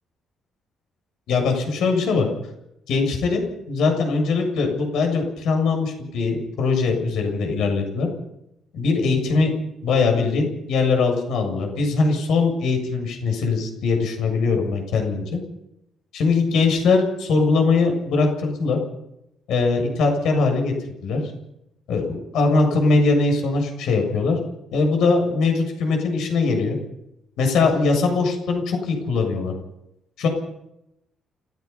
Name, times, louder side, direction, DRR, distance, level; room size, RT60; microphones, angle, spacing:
voice 1, 1.3-2.3 2.9-3.4 3.7-8.1 8.7-9.5 9.8-15.4 16.1-18.8 19.5-20.7 21.0-21.2 21.9-24.4 24.7-26.8 27.4-29.5 30.2-30.3, left 4 dB, 80° left, 3 dB, 7.3 m, -21 dB
29.5 x 17.0 x 5.6 m, 0.82 s
cardioid pair, 145°, 0 cm